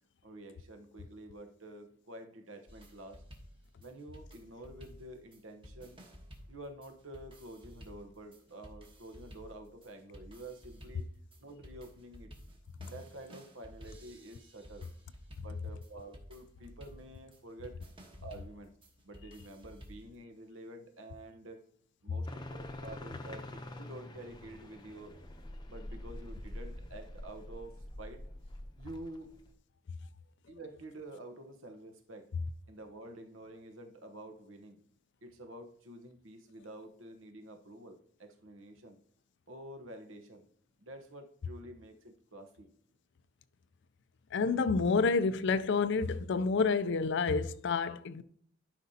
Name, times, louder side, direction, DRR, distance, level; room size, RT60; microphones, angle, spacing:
voice 1, 0.2-3.2 3.8-6.0 6.5-11.1 11.4-12.3 12.8-14.9 15.4-17.8 18.2-18.7 19.0-21.6 22.0-25.1 25.7-28.2 28.8-29.3 30.5-32.3 32.7-34.8 35.2-39.0 39.5-40.5 40.8-42.7, right 1 dB, 80° right, 1.1 m, -49 dB
sound 1, 2.7-20.2, equal, 25° right, 1.2 m, -53 dB
sound 2, 22.2-29.5, left 1 dB, 20° left, 0.7 m, -46 dB
voice 2, 44.3-48.2, left 4 dB, 65° left, 0.5 m, -29 dB
12.0 x 5.2 x 2.8 m
head